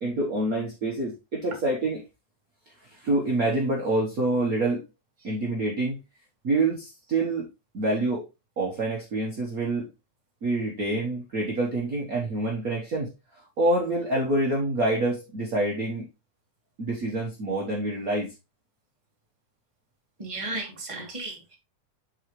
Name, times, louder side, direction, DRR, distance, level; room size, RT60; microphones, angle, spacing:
voice 1, 0.0-2.0 2.8-4.8 5.2-6.0 6.4-7.5 7.7-8.3 8.6-9.9 10.4-16.1 16.8-18.3, right 2 dB, 55° right, 1.0 m, -27 dB
voice 2, 20.2-21.6, right 2 dB, 15° right, 1.4 m, -34 dB
7.8 x 4.9 x 3.2 m
omnidirectional pair, 3.5 m